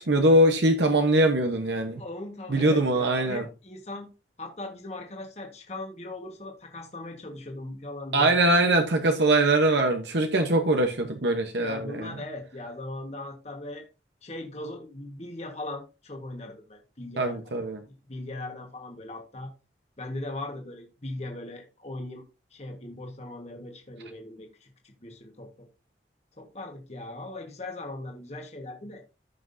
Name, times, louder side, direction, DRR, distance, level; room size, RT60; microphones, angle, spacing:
voice 1, 0.0-2.0 2.5-3.4 8.1-12.1 17.2-17.8, right 1 dB, 75° right, 1.1 m, -22 dB
voice 2, 1.9-4.1 4.4-8.4 11.6-13.8 14.2-17.6 18.1-19.5 20.0-22.2 22.5-25.7 26.4-29.0, left 2 dB, 35° left, 1.5 m, -39 dB
14.5 x 6.0 x 2.7 m
head